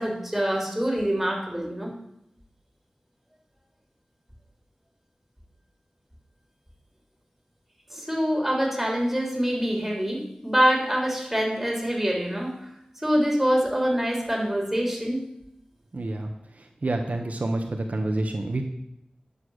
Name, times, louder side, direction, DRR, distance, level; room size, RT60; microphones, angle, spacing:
voice 1, 0.0-1.9 7.9-12.5 13.0-15.2, equal, 5° right, -1 dB, 3.3 m, -25 dB
voice 2, 15.9-16.3 16.8-18.6, right 2 dB, 65° right, 3 dB, 1.1 m, -28 dB
9.9 x 7.0 x 6.3 m, 0.80 s
wide cardioid pair, 65°, 3 cm